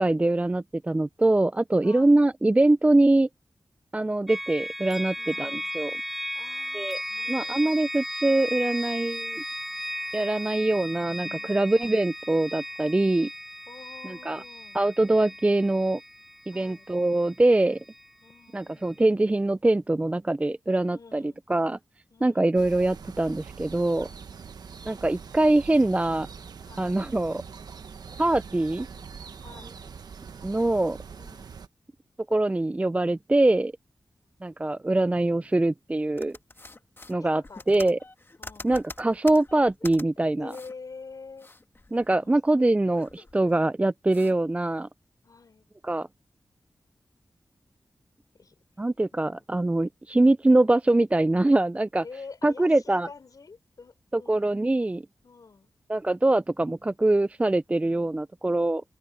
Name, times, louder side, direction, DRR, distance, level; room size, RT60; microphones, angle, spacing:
voice 1, 0.0-3.3 3.9-5.9 6.7-7.0 7.3-9.4 10.1-13.3 14.3-14.4 14.8-16.0 16.5-17.8 18.5-21.2 21.5-21.8 22.2-24.1 24.9-26.3 26.8-27.4 28.2-28.9 30.4-31.0 32.3-33.7 34.4-36.4 37.1-37.4 37.7-38.0 38.6-40.5 41.9-44.9 45.8-46.1 48.8-52.0 52.4-53.1 54.1-55.0 55.9-58.8, right 2 dB, 20° right, 0.4 m, -23 dB
voice 2, 1.8-2.2 5.2-5.7 6.3-7.8 10.5-10.7 11.5-11.8 13.7-14.8 16.5-16.9 18.2-19.0 20.9-21.4 22.1-22.6 26.7-26.9 29.4-29.8 31.2-31.6 37.2-38.0 38.4-38.8 40.4-41.5 42.1-42.4 43.5-43.7 45.2-45.7 48.3-48.6 49.2-49.5 52.0-54.5 55.2-55.7, left 4 dB, 65° left, 5.4 m, -47 dB
sound 1, 4.3-18.1, equal, 5° right, 2.6 m, -36 dB
sound 2, 22.6-31.7, right 6 dB, 85° right, 1.2 m, -43 dB
sound 3, 36.2-40.0 40.5-40.7 41.1-42.5 42.8-43.6 44.1-44.3, left 2 dB, 35° left, 1.7 m, -45 dB
cardioid pair, 55°, 7 cm